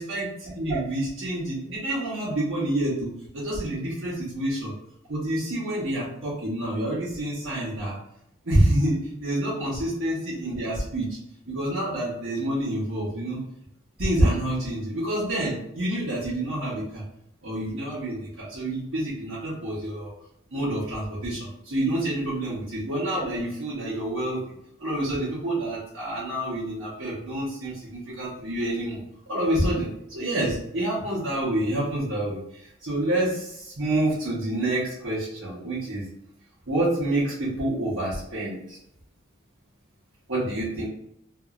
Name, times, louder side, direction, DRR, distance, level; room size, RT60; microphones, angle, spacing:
voice 1, 0.0-4.7 5.1-8.0 8.4-11.2 11.4-13.4 14.0-17.0 17.4-20.1 20.5-24.4 24.8-36.1 36.7-38.8 40.3-40.9, right 1 dB, 70° right, -11 dB, 1.0 m, -28 dB
2.9 x 2.6 x 2.5 m, 0.77 s
head